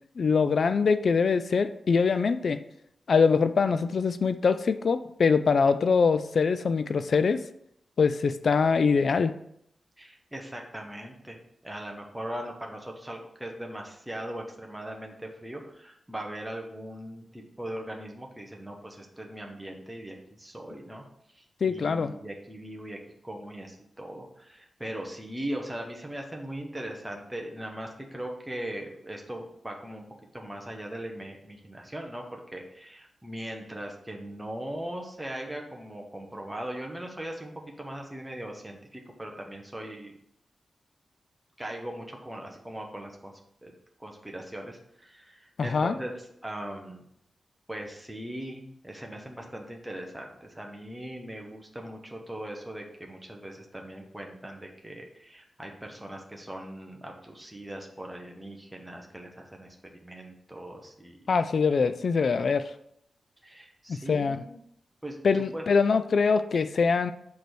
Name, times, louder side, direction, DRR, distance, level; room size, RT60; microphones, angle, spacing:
voice 1, 0.2-2.6 3.1-7.4 8.0-9.3 21.6-22.1 45.6-46.0 61.3-62.7 63.9-64.4 65.2-67.1, left 5 dB, 60° left, 11 dB, 0.4 m, -23 dB
voice 2, 10.0-11.4 11.6-21.0 21.3-30.0 30.3-40.1 41.6-43.3 43.6-43.7 44.0-47.0 47.7-59.7 60.0-61.2 63.4-64.6 65.0-65.6, right 1 dB, 5° right, 0 dB, 0.9 m, -39 dB
6.7 x 3.4 x 6.1 m, 0.73 s
wide cardioid pair, 135°, 0 cm